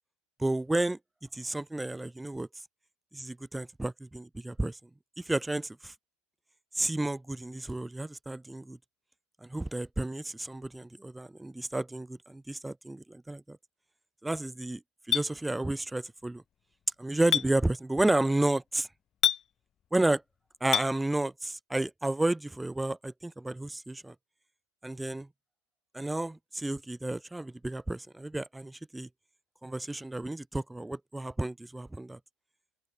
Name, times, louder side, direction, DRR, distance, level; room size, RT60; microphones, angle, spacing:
voice 1, 0.4-1.0 1.3-2.5 3.1-4.8 5.2-5.9 6.7-8.8 9.4-13.6 14.2-14.8 15.1-16.4 17.0-18.9 19.9-20.2 20.6-24.1 24.8-25.3 25.9-29.1 29.6-32.2, right 2 dB, 5° right, 2.4 m, -31 dB
Chink clink, 15.1-15.3 17.3-17.5 19.2-19.4 20.7-20.9, left 9 dB, 25° left, 0.8 m, -25 dB
open air
figure-of-eight pair, 90°, 0 cm